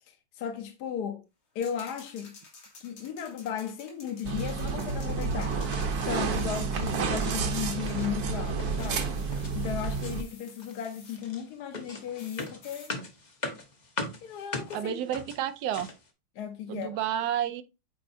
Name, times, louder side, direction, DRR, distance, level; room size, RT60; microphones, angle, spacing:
voice 1, 0.1-1.2 1.5-2.3 2.8-5.6 6.1-9.1 9.5-12.9 14.2-14.9 16.4-16.9, left 8 dB, 60° left, 1.1 m, -35 dB
sound 1, 1.6-8.2 8.8-11.3 12.2-12.9, left 4 dB, 85° left, 2.8 m, -52 dB
sound 2, 4.2-10.2, right 5 dB, 55° right, 1.2 m, -30 dB
sound 3, 5.5-5.9 6.2-6.6 6.9-7.4 7.6-8.1 8.6-9.6 9.8-10.3 10.6-16.1, left 2 dB, 40° left, 0.6 m, -40 dB
voice 2, 14.7-15.9 16.7-17.6, right 10 dB, 90° right, 0.8 m, -30 dB
8.8 x 4.2 x 2.7 m
omnidirectional pair, 2.3 m